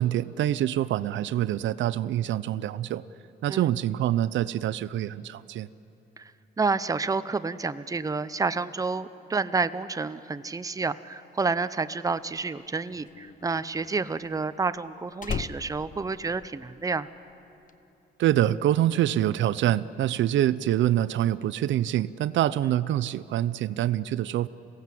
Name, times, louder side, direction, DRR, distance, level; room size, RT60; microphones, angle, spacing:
voice 1, 0.0-3.0 3.4-5.7 18.2-24.5, right 12 dB, 70° right, 16 dB, 0.5 m, -25 dB
voice 2, 6.6-17.1, right 4 dB, 15° right, 13 dB, 0.6 m, -29 dB
Slam, 12.4-17.0 17.3-17.7, left 6 dB, 40° left, 0.8 m, -38 dB
26.5 x 17.0 x 7.6 m, 2.9 s
cardioid pair, 90°, 20 cm